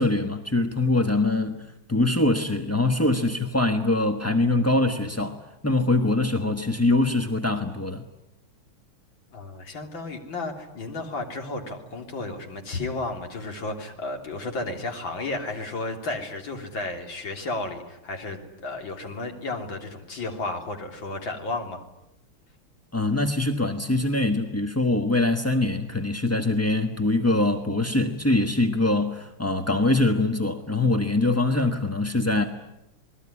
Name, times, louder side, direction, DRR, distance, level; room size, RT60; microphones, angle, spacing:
voice 1, 0.0-5.4 5.6-8.0 22.9-32.4, left 2 dB, 10° left, 5 dB, 0.7 m, -23 dB
voice 2, 9.3-21.8, left 2 dB, 60° left, 4 dB, 4.0 m, -33 dB
28.5 x 20.5 x 9.9 m, 0.88 s
omnidirectional pair, 2.4 m